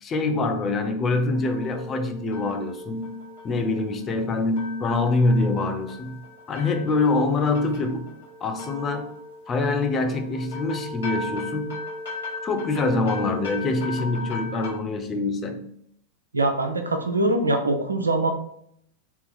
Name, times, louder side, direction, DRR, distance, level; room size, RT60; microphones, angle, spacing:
voice 1, 0.0-6.2 6.5-8.1 8.4-9.1 9.5-11.8 12.4-15.7, left 3 dB, 25° left, 6 dB, 0.6 m, -25 dB
sound 1, 1.3-14.7, left 2 dB, 65° left, 1.7 m, -38 dB
voice 2, 16.3-18.3, right 2 dB, 80° right, 6 dB, 0.6 m, -23 dB
3.8 x 2.8 x 4.2 m, 0.69 s
figure-of-eight pair, 90°, 0 cm